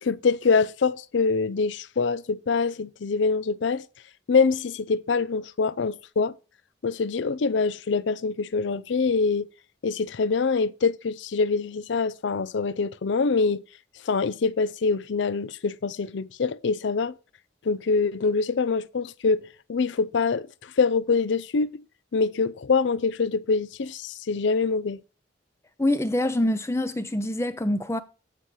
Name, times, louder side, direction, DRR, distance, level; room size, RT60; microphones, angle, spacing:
voice 1, 0.0-3.8 4.3-6.3 6.8-9.5 9.8-13.6 14.0-17.1 17.6-19.4 19.7-21.8 22.1-25.0, left 4 dB, 65° left, 0.5 m, -24 dB
voice 2, 25.8-28.0, left 1 dB, 15° left, 0.5 m, -25 dB
15.0 x 5.5 x 3.1 m
head